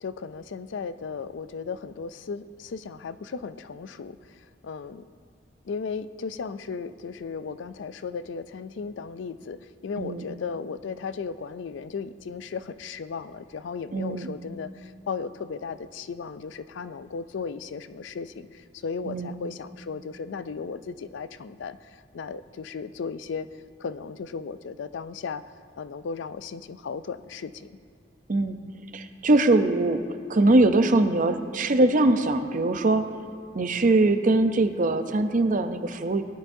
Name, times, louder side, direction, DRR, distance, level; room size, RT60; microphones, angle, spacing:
voice 1, 0.0-5.0 5.7-23.5 23.8-25.4 25.8-27.5, left 5 dB, 70° left, 13 dB, 0.4 m, -36 dB
voice 2, 13.9-14.3 19.0-19.4 28.3-28.6 28.9-30.0 30.3-33.0 33.5-36.2, right 2 dB, 45° right, 9 dB, 0.6 m, -22 dB
18.0 x 11.5 x 2.7 m, 2.3 s
head